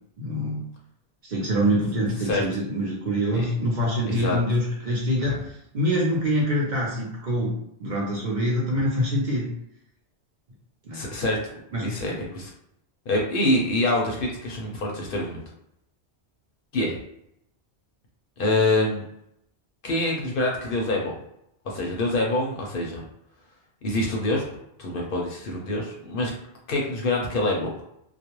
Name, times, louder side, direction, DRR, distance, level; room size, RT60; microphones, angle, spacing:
voice 1, 0.2-0.6 1.2-5.4 5.7-7.5 7.8-9.5 10.8-11.0 11.7-12.2, equal, 50° right, -3 dB, 0.7 m, -25 dB
voice 2, 4.1-4.4 5.2-5.4 8.7-8.8 10.9-11.4 11.8-12.5 13.1-15.4 16.7-17.0 18.4-19.0 19.8-21.1 21.6-23.0 23.8-24.4 24.8-26.3 26.7-27.8, left 2 dB, 60° left, -1 dB, 0.7 m, -25 dB
2.4 x 2.1 x 2.9 m, 0.77 s
omnidirectional pair, 1.1 m